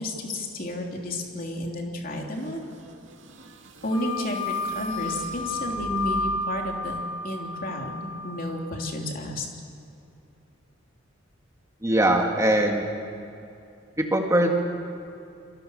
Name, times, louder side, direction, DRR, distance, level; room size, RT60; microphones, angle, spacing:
voice 1, 0.0-2.6 3.8-9.5, left 1 dB, 45° left, 1 dB, 3.3 m, -32 dB
sound 1, 2.3-6.7, right 2 dB, 75° right, 2.4 m, -45 dB
sound 2, 3.9-8.7, left 2 dB, 30° left, 5.7 m, -32 dB
voice 2, 11.8-12.8 14.0-14.5, right 1 dB, 15° right, 2 dB, 2.1 m, -21 dB
28.0 x 22.5 x 6.5 m, 2.6 s
head